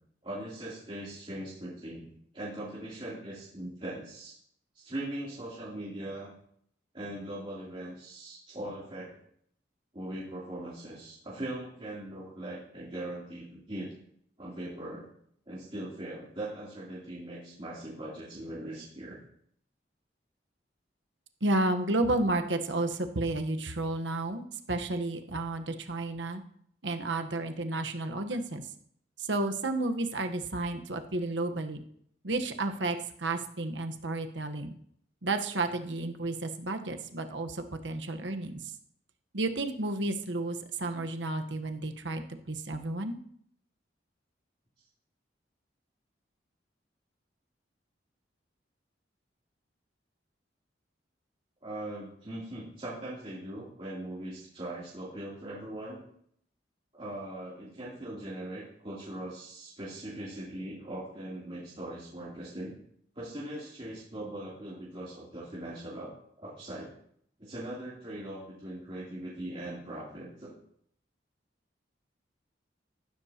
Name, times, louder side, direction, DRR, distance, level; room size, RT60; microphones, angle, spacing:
voice 1, 0.2-2.1 2.3-4.4 4.7-6.3 6.9-9.1 9.9-13.9 14.4-15.1 15.5-19.2 51.6-56.0 56.9-62.7 63.1-66.1 66.4-66.9 67.4-70.5, right 1 dB, 30° right, -9 dB, 3.2 m, -40 dB
voice 2, 21.4-24.4 24.7-26.4 26.8-28.6 29.2-31.8 32.2-34.7 35.2-38.6 39.3-43.2, right 2 dB, 80° right, 6 dB, 1.2 m, -32 dB
15.0 x 12.5 x 2.9 m, 0.67 s
head